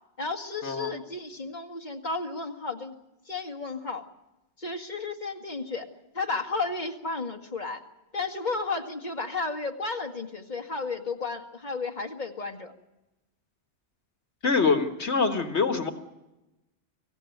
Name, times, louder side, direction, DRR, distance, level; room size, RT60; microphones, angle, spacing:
voice 1, 0.2-2.9 3.3-4.0 4.6-5.9 6.1-7.8 8.1-12.7, left 3 dB, 40° left, 3 dB, 2.0 m, -33 dB
voice 2, 14.4-15.9, left 4 dB, 75° left, 6 dB, 1.9 m, -24 dB
25.0 x 16.0 x 9.2 m, 1.0 s
omnidirectional pair, 1.1 m